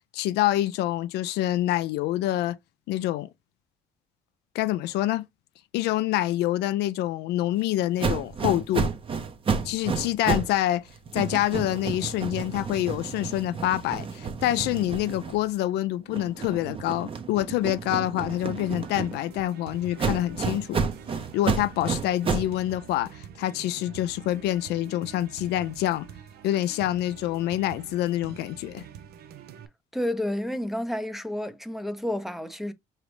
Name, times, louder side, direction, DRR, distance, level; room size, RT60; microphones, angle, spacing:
voice 1, 0.1-2.6 2.9-3.3 4.5-5.3 5.7-8.9 9.6-10.9 11.1-20.8 21.3-26.1 26.4-28.8, left 14 dB, 80° left, 0.4 m, -26 dB
sound 1, 8.0-10.6 10.9-15.7 16.1-19.4 20.0-22.6, right 5 dB, 30° right, 0.7 m, -31 dB
sound 2, 18.2-29.7, right 9 dB, 70° right, 0.6 m, -46 dB
voice 2, 29.9-32.7, left 1 dB, ahead, 0.6 m, -30 dB
5.0 x 3.0 x 3.1 m
cardioid pair, 110°, 17 cm